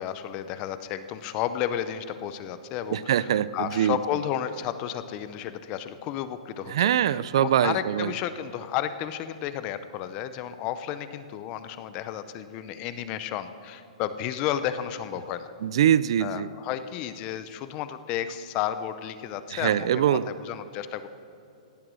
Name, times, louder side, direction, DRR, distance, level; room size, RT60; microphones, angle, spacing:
voice 1, 0.0-6.7 7.1-15.5 16.2-21.1, left 10 dB, 20° left, 12 dB, 0.5 m, -32 dB
voice 2, 2.9-4.0 6.7-8.2 15.6-16.5 19.5-20.3, right 10 dB, 45° right, 18 dB, 0.3 m, -23 dB
17.0 x 7.9 x 6.2 m, 2.8 s
hypercardioid pair, 175°, 4 cm